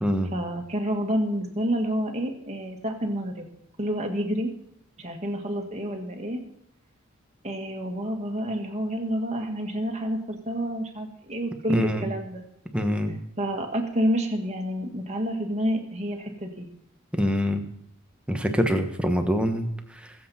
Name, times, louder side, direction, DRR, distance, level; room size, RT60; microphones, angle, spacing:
voice 1, 0.3-3.5 3.8-4.5 5.0-6.4 7.4-12.4 13.4-16.7, equal, 35° right, 3 dB, 1.9 m, -29 dB
voice 2, 11.7-12.1 12.7-13.2 17.1-17.6 18.3-20.1, equal, 5° right, 5 dB, 1.2 m, -25 dB
21.0 x 7.9 x 4.4 m, 0.80 s
head